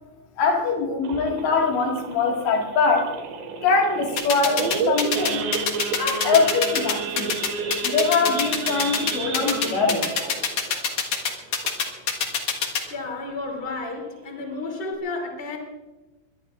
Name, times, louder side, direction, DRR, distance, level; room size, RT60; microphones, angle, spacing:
voice 1, 0.4-3.1 3.6-5.5 6.0-7.4 7.8-10.1, left 4 dB, 70° left, 0 dB, 4.2 m, -23 dB
Idling / Accelerating revving vroom / Sawing, 1.0-12.1 12.5-12.7 13.0-13.1 13.6-13.8 14.3-14.4 14.6-14.9, right 5 dB, 75° right, 3.8 m, -31 dB
sound 1, 4.2-12.8, left 6 dB, 55° left, 2.4 m, -24 dB
voice 2, 12.9-15.6, left 3 dB, 15° left, 1 dB, 2.1 m, -32 dB
23.0 x 23.0 x 2.5 m, 1.2 s
omnidirectional pair, 5.2 m